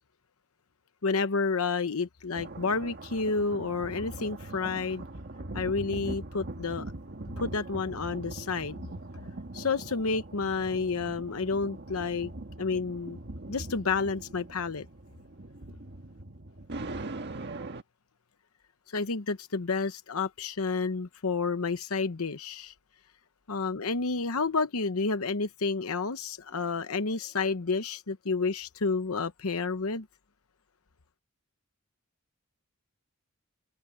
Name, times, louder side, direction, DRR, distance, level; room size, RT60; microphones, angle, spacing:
voice 1, 1.0-5.0 5.5-6.8 7.4-8.8 9.5-12.3 12.6-13.2 13.5-14.9 18.9-22.7 23.5-30.1, left 4 dB, 85° left, 0.9 m, -30 dB
sound 1, 2.4-17.8, right 2 dB, 50° right, 1.6 m, -41 dB
head